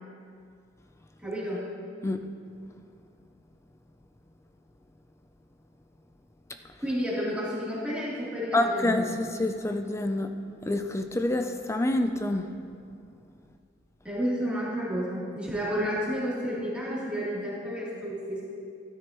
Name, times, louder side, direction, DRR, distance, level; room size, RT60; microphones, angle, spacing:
voice 1, 1.2-1.6 6.8-9.2 14.0-18.4, equal, 5° right, -9 dB, 3.1 m, -31 dB
voice 2, 8.5-10.3 10.7-12.5, left 1 dB, 15° left, 6 dB, 0.5 m, -27 dB
14.0 x 12.5 x 3.0 m, 2.3 s
head